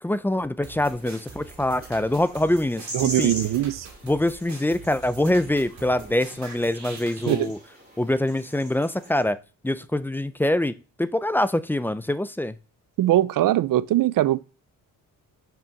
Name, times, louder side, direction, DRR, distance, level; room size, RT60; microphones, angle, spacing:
voice 1, 0.0-3.3 4.0-7.6 8.0-9.4 9.6-12.6, left 1 dB, 5° left, 0.3 m, -24 dB
sound 1, 0.6-7.5, right 4 dB, 50° right, 2.3 m, -44 dB
sound 2, 0.8-9.2, right 1 dB, 25° right, 4.5 m, -41 dB
voice 2, 2.9-3.9 7.3-7.5 13.0-14.4, right 14 dB, 65° right, 0.5 m, -21 dB
6.8 x 6.2 x 5.7 m
wide cardioid pair, 160°, 36 cm